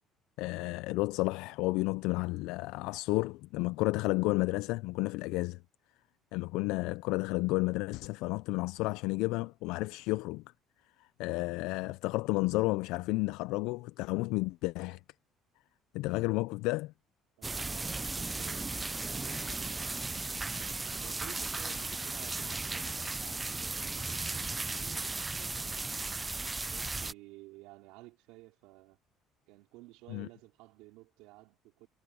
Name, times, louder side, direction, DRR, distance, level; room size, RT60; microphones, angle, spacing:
voice 1, 0.4-5.6 6.3-10.4 11.0-15.0 15.9-16.9 30.1-30.3, left 22 dB, 85° left, 0.3 m, -32 dB
sound 1, 17.4-27.1, right 3 dB, 15° right, 0.3 m, -36 dB
voice 2, 17.4-20.0 20.9-26.2 26.7-29.0 29.5-31.9, right 20 dB, 90° right, 4.4 m, -54 dB
cardioid pair, 115°, 0 cm